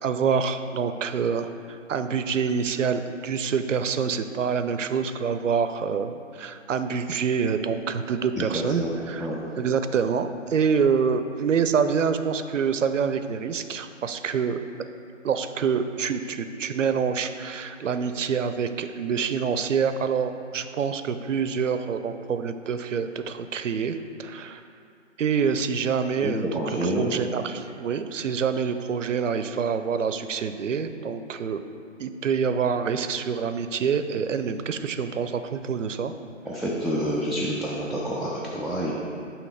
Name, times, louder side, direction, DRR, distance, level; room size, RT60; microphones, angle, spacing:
voice 1, 0.0-9.3 9.6-14.6 15.2-24.6 25.2-31.6 32.0-36.1, right 6 dB, 75° right, 10 dB, 0.5 m, -26 dB
voice 2, 8.4-8.9 9.2-9.4 26.2-27.2 36.4-38.9, equal, ahead, -7 dB, 0.3 m, -28 dB
6.5 x 3.0 x 5.7 m, 2.5 s
figure-of-eight pair, 170°, 39 cm